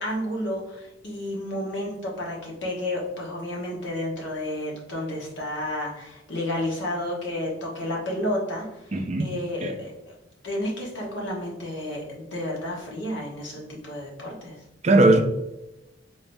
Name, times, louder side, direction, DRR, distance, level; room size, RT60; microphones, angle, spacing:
voice 1, 0.0-9.9 10.4-14.6, left 1 dB, 70° left, 1.2 m, -31 dB
voice 2, 8.9-9.3 9.6-9.7 14.8-15.2, right 2 dB, 35° right, 0.4 m, -18 dB
3.8 x 3.4 x 2.6 m
head